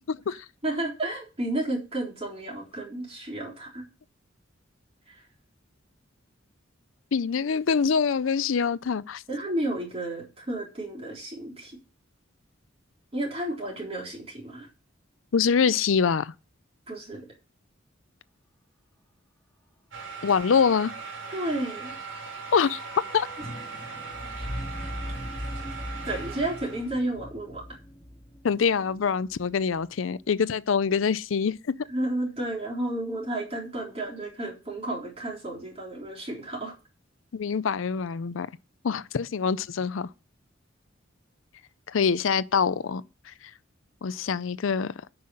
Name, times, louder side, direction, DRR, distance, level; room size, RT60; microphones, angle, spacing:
voice 1, 0.1-0.5 7.1-9.2 15.3-16.3 20.2-20.9 22.5-22.8 23.1-23.3 28.4-31.5 37.3-38.5 38.8-40.1 41.9-43.3 44.0-44.9, left 6 dB, 85° left, 0.5 m, -25 dB
voice 2, 0.6-3.8 9.3-11.7 13.1-14.7 16.9-17.3 21.3-21.9 26.1-27.6 31.9-36.7, right 1 dB, 30° right, 3.8 m, -32 dB
sound 1, 19.9-26.9, right 5 dB, 75° right, 3.7 m, -39 dB
sound 2, 21.7-29.8 30.1-30.2, equal, 15° left, 2.0 m, -40 dB
9.6 x 5.6 x 7.7 m
head